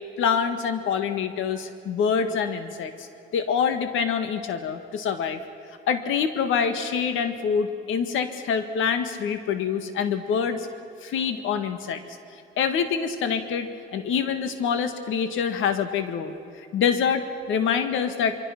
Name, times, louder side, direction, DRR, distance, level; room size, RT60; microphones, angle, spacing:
voice 1, 0.2-5.4 5.9-10.7 11.0-12.0 12.6-18.4, left 6 dB, 85° left, 8 dB, 1.8 m, -26 dB
24.5 x 24.0 x 6.0 m, 2.6 s
cardioid pair, 90°, 20 cm